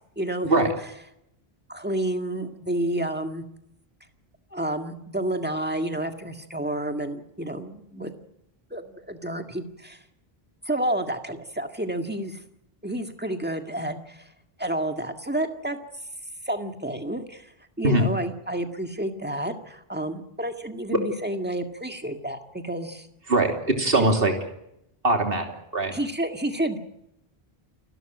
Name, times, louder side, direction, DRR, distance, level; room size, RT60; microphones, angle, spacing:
voice 1, 0.2-0.7 1.7-3.4 4.5-8.1 8.7-10.0 10.7-12.4 12.8-14.3 14.6-15.8 16.5-17.5 17.8-23.1 25.9-26.8, right 1 dB, 10° right, 5 dB, 1.9 m, -30 dB
voice 2, 23.3-24.3 25.0-25.5 25.7-25.9, right 2 dB, 65° right, 3 dB, 3.2 m, -21 dB
29.0 x 13.0 x 9.2 m, 0.81 s
omnidirectional pair, 1.0 m